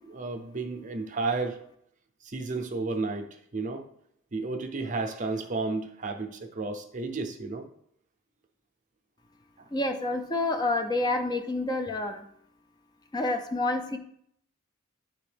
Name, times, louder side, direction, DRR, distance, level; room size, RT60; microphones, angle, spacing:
voice 1, 0.0-1.6 2.2-3.3 3.5-3.8 4.3-7.7, right 3 dB, 40° right, 5 dB, 0.6 m, -32 dB
voice 2, 9.7-12.2 13.1-14.0, left 2 dB, 20° left, 6 dB, 0.4 m, -28 dB
9.9 x 3.5 x 3.4 m, 0.71 s
head